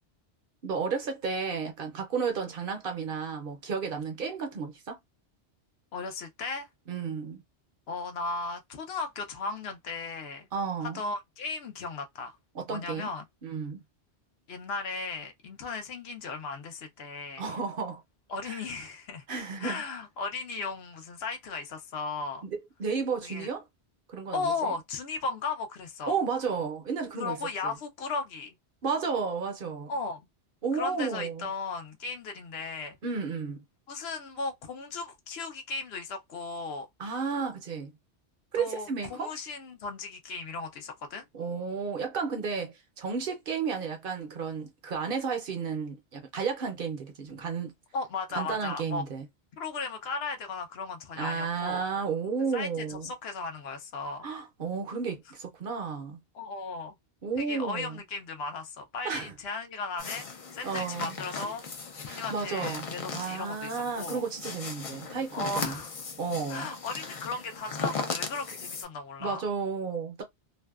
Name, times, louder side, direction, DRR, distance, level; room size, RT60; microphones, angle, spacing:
voice 1, 0.6-5.0 6.9-7.4 10.5-11.0 12.5-13.1 13.4-13.8 17.4-18.0 18.4-18.6 19.3-19.8 22.4-23.6 24.1-24.7 26.1-27.4 27.6-27.8 28.8-29.9 30.6-31.5 33.0-33.6 37.0-37.9 38.5-39.3 41.3-47.7 48.3-49.3 51.2-53.1 54.2-56.2 57.2-58.0 59.0-59.3 60.6-61.2 62.1-62.8 63.1-65.8 66.2-66.7 69.2-70.2, right 5 dB, 60° right, 0.8 m, -32 dB
voice 2, 5.9-6.7 7.9-10.5 10.8-12.4 12.7-13.2 14.5-17.4 18.3-19.2 19.6-22.4 23.2-23.5 24.3-26.2 27.2-28.5 29.9-30.2 30.7-33.0 33.9-36.9 38.5-41.2 47.9-49.0 49.6-51.8 52.5-54.3 56.3-56.9 57.4-64.2 65.3-65.9 66.5-69.4, left 4 dB, 70° left, 0.8 m, -36 dB
sound 1, 60.0-68.8, left 4 dB, 45° left, 0.4 m, -38 dB
2.6 x 2.2 x 2.3 m
omnidirectional pair, 1.1 m